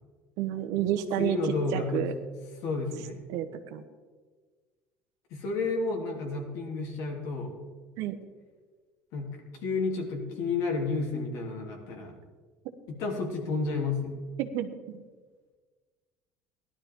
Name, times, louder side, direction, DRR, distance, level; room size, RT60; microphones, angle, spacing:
voice 1, 0.4-2.1 3.3-3.8 8.0-8.1 14.4-14.7, right 11 dB, 70° right, 8 dB, 1.2 m, -30 dB
voice 2, 1.2-2.1 2.6-3.2 5.3-7.5 9.1-9.3 9.6-12.1 12.9-14.2, left 3 dB, 65° left, 0 dB, 3.2 m, -31 dB
17.0 x 12.0 x 3.8 m, 1.4 s
supercardioid pair, 115°, 6 cm